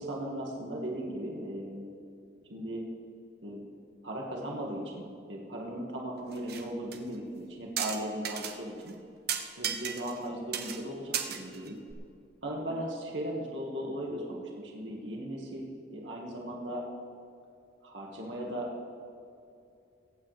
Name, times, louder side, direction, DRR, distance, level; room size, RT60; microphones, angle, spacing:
voice 1, 0.0-1.9 2.5-2.8 3.4-3.6 4.0-5.0 5.3-8.9 9.6-11.7 12.4-16.8 17.8-18.9, right 1 dB, 80° right, -2 dB, 2.2 m, -37 dB
sound 1, 6.3-6.6 6.9-7.0 7.8-8.5 8.9-9.0 9.3-10.3 10.5-10.8 11.1-11.9, right 8 dB, 60° right, 1.1 m, -34 dB
23.5 x 9.1 x 3.5 m, 2.6 s
head